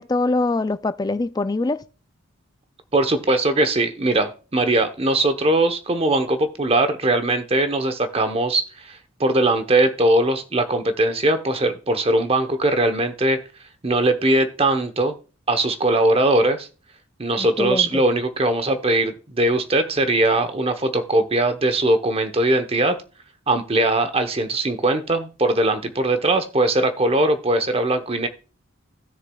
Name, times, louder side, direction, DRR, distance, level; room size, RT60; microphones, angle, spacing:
voice 1, 0.0-1.8 17.4-18.0, left 2 dB, 20° left, 0.3 m, -23 dB
voice 2, 2.9-13.4 13.8-15.1 15.5-16.7 17.2-23.0 23.5-28.3, right 2 dB, 30° right, 0.9 m, -20 dB
16.0 x 6.6 x 2.3 m
head